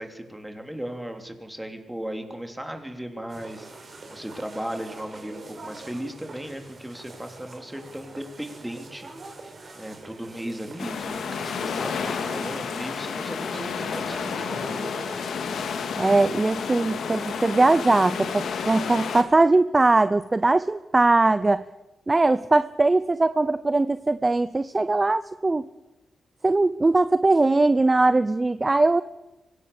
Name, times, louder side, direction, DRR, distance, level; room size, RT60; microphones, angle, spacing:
voice 1, 0.0-9.1 9.7-14.7, right 1 dB, 10° right, 5 dB, 3.3 m, -36 dB
sound 1, 3.3-15.3, right 3 dB, 50° right, 5.0 m, -44 dB
sound 2, 10.8-19.2, left 6 dB, 80° left, 2.2 m, -31 dB
voice 2, 16.0-21.7 22.1-25.7 26.4-29.0, right 2 dB, 25° right, 14 dB, 0.6 m, -20 dB
24.5 x 17.0 x 7.0 m, 1.0 s
cardioid pair, 80°, 0 cm